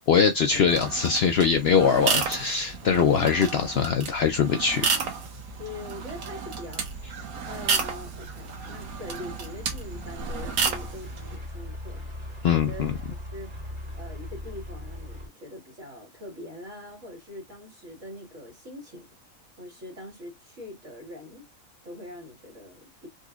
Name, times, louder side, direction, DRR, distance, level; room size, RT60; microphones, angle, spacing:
voice 1, 0.1-4.8 12.4-12.9, left 6 dB, 60° left, 0.7 m, -22 dB
sound 1, 0.5-15.3, left 1 dB, 35° right, 1.7 m, -42 dB
sound 2, 0.7-11.4, right 5 dB, 90° right, 1.3 m, -32 dB
voice 2, 5.6-6.9 7.5-12.0 12.5-13.5 13.9-19.1 19.6-21.4 21.8-23.1, left 1 dB, 60° right, 2.1 m, -42 dB
4.0 x 2.9 x 2.4 m
omnidirectional pair, 1.5 m